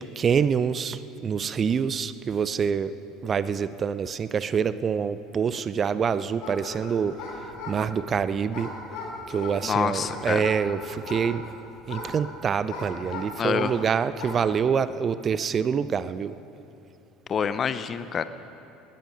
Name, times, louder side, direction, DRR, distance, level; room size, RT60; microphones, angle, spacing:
voice 1, 0.0-2.9 3.2-7.1 7.7-8.7 9.3-11.5 11.9-16.3, right 7 dB, 35° right, 15 dB, 0.5 m, -26 dB
sound 1, 6.4-13.8 14.1-14.5, left 3 dB, 60° left, 4.9 m, -38 dB
voice 2, 9.6-10.4 13.4-13.8 17.3-18.2, left 7 dB, 35° left, 13 dB, 0.7 m, -26 dB
19.5 x 13.5 x 5.4 m, 2.9 s
figure-of-eight pair, 65°, 0 cm